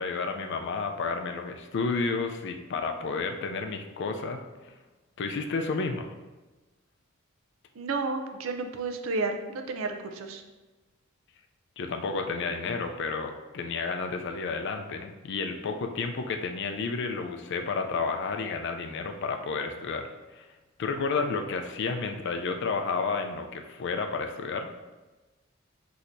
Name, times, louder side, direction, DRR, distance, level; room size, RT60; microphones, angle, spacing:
voice 1, 0.0-4.7 5.2-6.1 11.8-20.5 20.8-24.7, left 4 dB, 60° left, 5 dB, 0.4 m, -31 dB
voice 2, 7.8-10.4, right 3 dB, 70° right, 6 dB, 0.5 m, -31 dB
6.1 x 2.8 x 2.6 m, 1.2 s
head